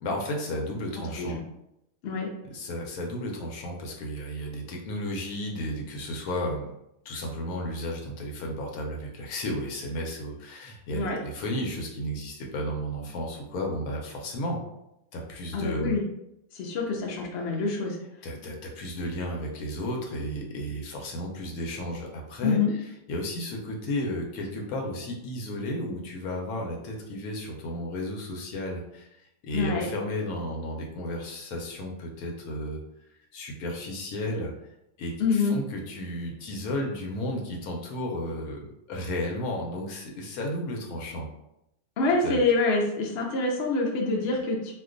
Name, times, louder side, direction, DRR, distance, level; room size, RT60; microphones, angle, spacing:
voice 1, 0.0-1.4 2.4-6.7 7.0-14.6 15.1-16.0 17.2-17.3 18.2-29.1 29.4-32.8 33.3-34.5 35.0-41.3 42.2-42.4, equal, 80° left, 0 dB, 1.1 m, -33 dB
voice 2, 15.5-16.0 16.5-18.0 22.4-22.7 29.5-29.9 35.2-35.6 42.0-44.7, left 3 dB, 60° left, -1 dB, 0.8 m, -26 dB
2.5 x 2.2 x 3.7 m, 0.84 s
omnidirectional pair, 1.5 m